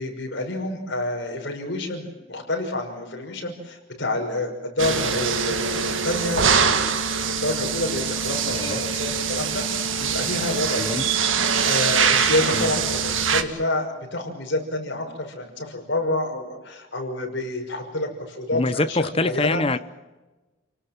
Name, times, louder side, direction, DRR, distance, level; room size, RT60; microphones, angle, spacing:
voice 1, 0.0-6.8 7.3-11.1 11.6-19.6, left 2 dB, 60° left, 3 dB, 5.9 m, -28 dB
sound 1, 4.8-13.4, right 6 dB, 75° right, 1.8 m, -23 dB
voice 2, 18.5-19.8, left 2 dB, 30° left, 12 dB, 0.9 m, -24 dB
30.0 x 18.5 x 7.5 m, 1.1 s
head